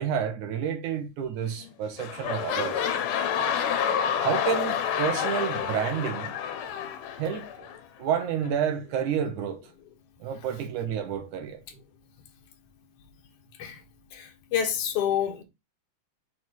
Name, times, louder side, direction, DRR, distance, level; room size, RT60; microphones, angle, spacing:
voice 1, 0.0-2.9 4.2-6.3 7.2-7.7 8.0-9.6 10.2-11.6, right 8 dB, 70° right, 2.6 m, -29 dB
sound 1, 1.4-1.7 1.9-7.8 8.4-8.5, left 8 dB, 80° left, 2.4 m, -29 dB
voice 2, 14.1-15.4, left 9 dB, 55° left, 2.2 m, -28 dB
6.4 x 3.6 x 4.5 m
omnidirectional pair, 3.6 m